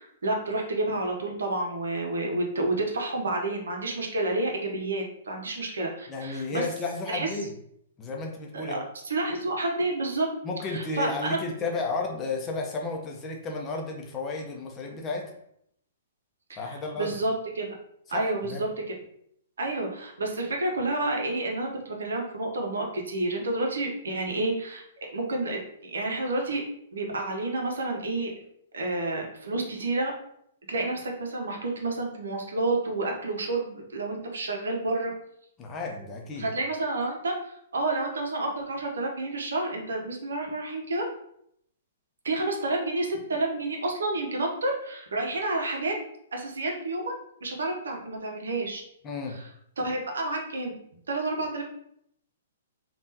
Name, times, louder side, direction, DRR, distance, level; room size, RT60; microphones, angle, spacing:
voice 1, 0.0-6.6 7.1-7.3 8.5-8.8 9.0-10.3 10.7-11.4 16.6-17.7 18.1-18.7 19.6-24.8 25.1-26.6 26.9-28.3 28.7-30.1 30.7-35.1 36.4-41.0 42.2-45.9 46.3-47.1 47.4-48.8 49.3-49.4 49.8-50.7 51.1-51.6, right 2 dB, 75° right, 1 dB, 0.7 m, -29 dB
voice 2, 6.1-7.5 8.0-8.8 10.4-15.3 16.6-17.1 18.1-18.6 35.6-36.5 49.0-49.4, left 3 dB, 20° left, 0 dB, 0.6 m, -33 dB
3.5 x 2.4 x 2.7 m, 0.71 s
hypercardioid pair, 125°, 0 cm